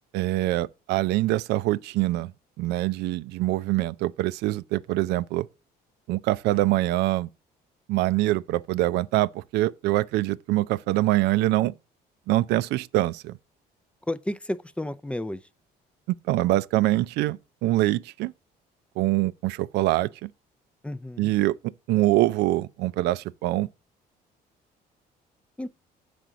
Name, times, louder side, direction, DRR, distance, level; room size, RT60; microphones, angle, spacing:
voice 1, 0.1-2.3 2.6-5.5 6.1-7.3 7.9-11.7 12.3-13.4 16.3-18.3 19.0-20.3 21.2-21.6 21.9-23.7, right 17 dB, 85° right, 0.4 m, -24 dB
voice 2, 14.1-15.4 20.8-21.3 25.6-25.7, left 1 dB, 5° left, 0.4 m, -31 dB
6.2 x 5.1 x 6.6 m
cardioid pair, 110°, 17 cm